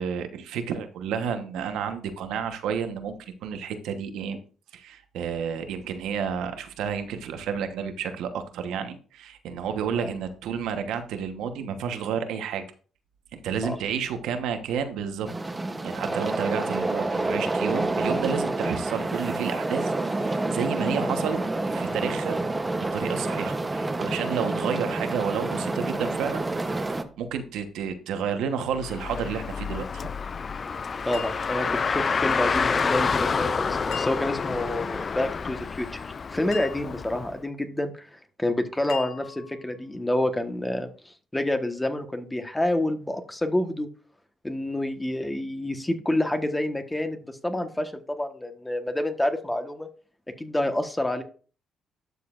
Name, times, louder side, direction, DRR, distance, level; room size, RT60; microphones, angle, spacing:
voice 1, 0.0-3.1 3.4-4.4 4.7-12.6 13.3-15.3 15.8-19.9 20.2-21.4 21.7-22.4 22.7-26.4 26.7-29.9, right 7 dB, 85° right, 7 dB, 1.1 m, -31 dB
sound 1, 15.3-27.0, right 2 dB, 20° right, 0.9 m, -28 dB
Car, 28.7-37.3, left 5 dB, 40° left, 0.4 m, -28 dB
voice 2, 31.0-36.0 36.3-43.9 44.4-49.9 50.4-51.2, left 1 dB, 10° left, 7 dB, 1.3 m, -28 dB
sound 2, 31.1-32.1 33.9-34.7 36.5-37.2 38.9-39.7, left 7 dB, 80° left, 1.1 m, -40 dB
12.0 x 6.8 x 2.5 m, 0.39 s
cardioid pair, 90°, 0 cm